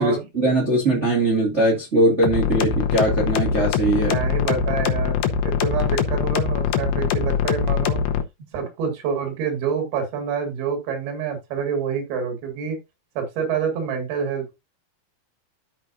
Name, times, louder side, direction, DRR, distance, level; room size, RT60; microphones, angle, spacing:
voice 1, 0.0-4.2, right 2 dB, 25° right, 1.9 m, -20 dB
sound 1, 2.2-8.2, left 7 dB, 90° left, 2.9 m, -22 dB
voice 2, 4.1-8.0 8.5-12.8 13.2-14.6, right 7 dB, 90° right, 3.9 m, -27 dB
13.5 x 4.7 x 2.6 m
omnidirectional pair, 4.3 m